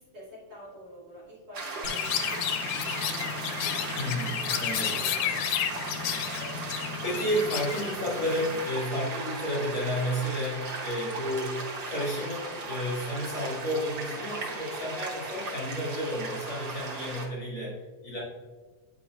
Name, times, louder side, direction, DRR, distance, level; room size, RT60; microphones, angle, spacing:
voice 1, 0.0-5.6, equal, 50° right, -6 dB, 2.7 m, -49 dB
sound 1, 1.5-17.3, right 3 dB, 85° right, 0.9 m, -37 dB
Chirp tweet, 1.8-8.7, left 10 dB, 90° left, 2.0 m, -32 dB
voice 2, 3.9-5.1 7.0-17.8 18.0-18.2, equal, 45° left, -7 dB, 2.4 m, -32 dB
8.6 x 5.2 x 2.4 m, 1.3 s
omnidirectional pair, 3.4 m